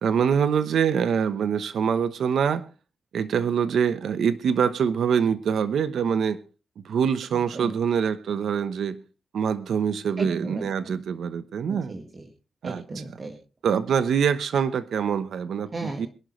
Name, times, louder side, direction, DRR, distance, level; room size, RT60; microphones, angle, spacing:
voice 1, 0.0-2.6 3.1-6.4 6.8-9.0 9.3-11.9 12.6-12.8 13.6-16.1, right 7 dB, 75° right, 13 dB, 1.0 m, -24 dB
voice 2, 7.3-7.7 10.2-10.9 11.7-12.3 12.6-13.4 15.7-16.1, right 2 dB, 35° right, 5 dB, 2.0 m, -35 dB
23.0 x 11.5 x 3.2 m, 0.33 s
wide cardioid pair, 115°, 0 cm